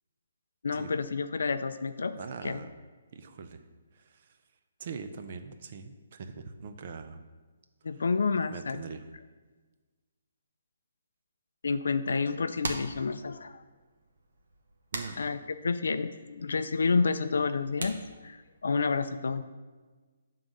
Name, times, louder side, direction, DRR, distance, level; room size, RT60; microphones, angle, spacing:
voice 1, 0.6-2.1 2.4-2.6 7.8-8.8 11.6-13.6 15.2-19.4, left 4 dB, 80° left, 10 dB, 0.4 m, -29 dB
voice 2, 2.1-2.7 3.1-3.6 3.9-4.4 4.8-7.2 7.9-8.0 8.5-9.0 14.9-15.2, right 5 dB, 35° right, 8 dB, 0.5 m, -42 dB
sound 1, 12.3-18.8, right 2 dB, 70° right, 1.1 m, -43 dB
8.8 x 3.8 x 6.3 m, 1.3 s
hypercardioid pair, 180°, 0 cm